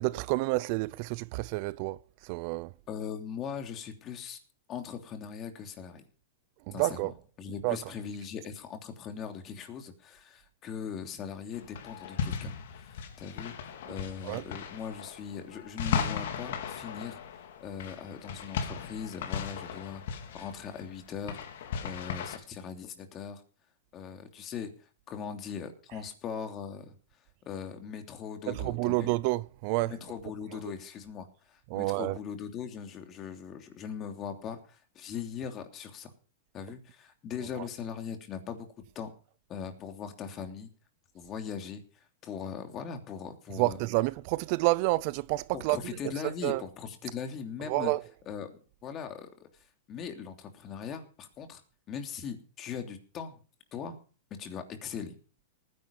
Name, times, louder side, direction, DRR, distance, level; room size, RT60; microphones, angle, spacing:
voice 1, 0.0-2.0 2.2-2.7 6.7-7.1 7.6-7.8 14.2-14.4 28.5-29.9 31.7-32.2 37.6-37.7 43.6-45.8 46.4-46.6 47.7-48.0, right 21 dB, 45° right, 0.6 m, -29 dB
voice 2, 2.9-4.4 4.7-6.0 6.7-23.4 23.9-26.9 27.4-29.1 29.8-36.1 36.5-38.7 38.9-39.1 39.5-40.7 41.1-43.8 45.5-47.9 48.3-48.5 48.8-49.5 49.9-51.6 51.9-53.4 53.7-54.0 54.3-55.2, left 7 dB, 30° left, 3.1 m, -40 dB
sound 1, 11.5-22.4, left 7 dB, 65° left, 3.6 m, -37 dB
19.0 x 10.5 x 5.5 m
supercardioid pair, 150°, 0 cm